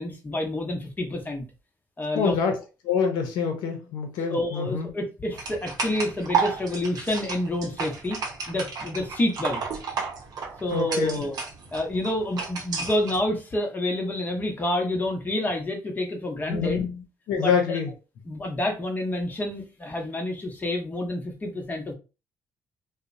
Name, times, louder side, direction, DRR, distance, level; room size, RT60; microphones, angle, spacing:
voice 1, 0.0-1.4 2.0-2.4 4.3-8.2 8.5-9.6 10.6-11.4 11.7-16.9 17.4-17.8 18.3-21.9, left 1 dB, 25° left, 0.7 m, -28 dB
voice 2, 2.1-2.6 2.8-4.9 10.7-11.2 16.5-17.9, left 6 dB, 85° left, 0.6 m, -26 dB
sound 1, 5.4-13.2, right 5 dB, 60° right, 0.7 m, -32 dB
2.7 x 2.0 x 2.5 m
cardioid pair, 90°, 7 cm